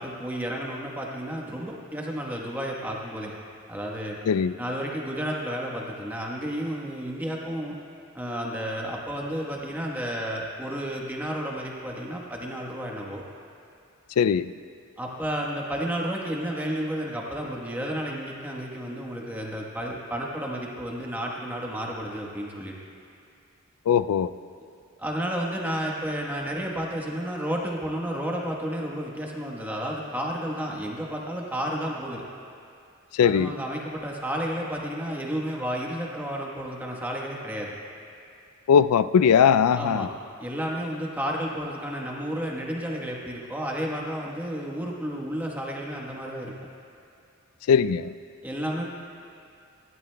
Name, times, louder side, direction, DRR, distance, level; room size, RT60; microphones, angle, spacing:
voice 1, 0.0-3.3 3.7-4.2 4.6-7.8 8.1-13.2 15.0-22.7 25.0-32.2 33.2-37.7 39.7-40.1 40.4-46.5 48.4-48.8, equal, 10° right, -2 dB, 1.1 m, -31 dB
voice 2, 14.2-14.5 23.9-24.3 33.1-33.5 38.7-40.1 47.7-48.0, left 7 dB, 80° left, 15 dB, 0.3 m, -20 dB
29.0 x 12.5 x 2.2 m, 2.5 s
head